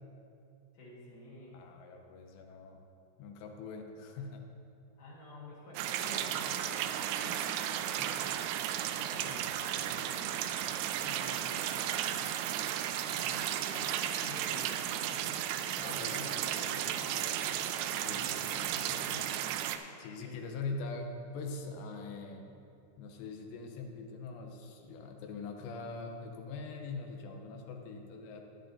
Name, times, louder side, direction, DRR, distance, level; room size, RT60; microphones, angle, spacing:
voice 1, 0.7-1.6 5.0-7.0 7.2-8.0 9.0-10.3 11.0-12.3 13.0-15.2 15.8-19.4 20.2-20.3, left 2 dB, 55° left, -5 dB, 2.8 m, -49 dB
voice 2, 1.5-2.8 3.2-4.4 7.9-8.3 9.2-9.5 15.8-16.2 17.9-18.8 20.0-22.4 23.0-28.4, left 3 dB, 80° left, 3 dB, 3.0 m, -43 dB
sound 1, 5.8-19.8, right 11 dB, 85° right, 2.7 m, -34 dB
15.0 x 10.0 x 2.7 m, 2.6 s
omnidirectional pair, 5.0 m